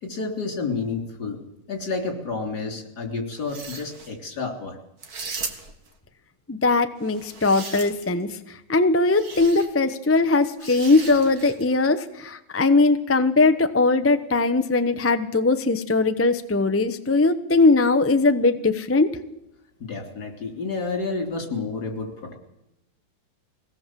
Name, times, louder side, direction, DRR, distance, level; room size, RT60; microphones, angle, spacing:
voice 1, 0.0-1.4 1.7-4.8 19.8-22.4, left 4 dB, 60° left, 3 dB, 4.0 m, -30 dB
sound 1, 3.4-4.1 5.0-5.9 7.0-8.2 9.1-9.7 10.6-11.7, right 4 dB, 55° right, 2.3 m, -37 dB
voice 2, 6.5-8.3 8.7-19.1, left 3 dB, 15° left, 9 dB, 0.5 m, -20 dB
22.5 x 18.0 x 7.5 m, 0.90 s
omnidirectional pair, 1.9 m